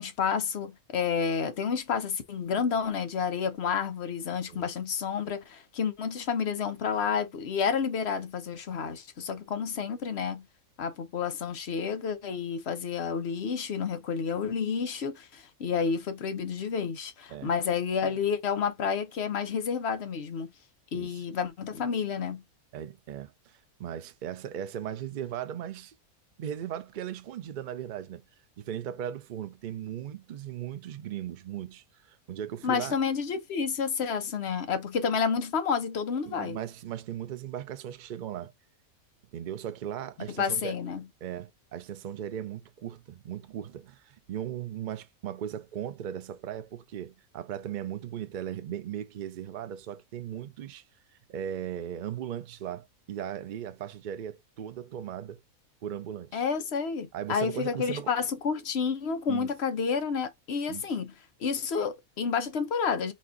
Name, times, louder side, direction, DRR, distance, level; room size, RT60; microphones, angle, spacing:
voice 1, 0.0-10.5 10.8-20.5 20.9-22.4 32.6-36.6 40.4-41.0 56.3-61.1 61.4-63.1, left 6 dB, 55° left, 0.9 m, -30 dB
voice 2, 22.7-25.9 26.4-28.2 28.6-33.0 36.3-38.5 39.3-40.8 41.2-50.8 51.3-55.4 55.8-56.4 57.1-58.1 59.3-59.5 60.7-60.9, right 10 dB, 80° right, 0.4 m, -37 dB
4.2 x 2.4 x 3.8 m
omnidirectional pair, 1.5 m